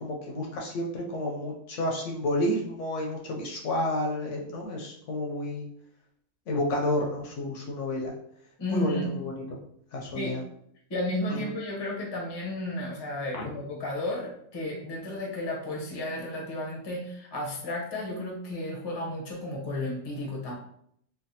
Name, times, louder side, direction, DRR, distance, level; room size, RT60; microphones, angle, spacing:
voice 1, 0.0-5.7 6.5-8.1 8.7-9.6 9.9-10.4 11.3-11.4 13.3-13.4, left 1 dB, 70° left, -1 dB, 0.8 m, -30 dB
voice 2, 8.6-9.2 10.1-10.4 10.9-20.5, left 1 dB, 35° left, -2 dB, 0.4 m, -33 dB
3.3 x 2.2 x 2.7 m, 0.70 s
omnidirectional pair, 1.5 m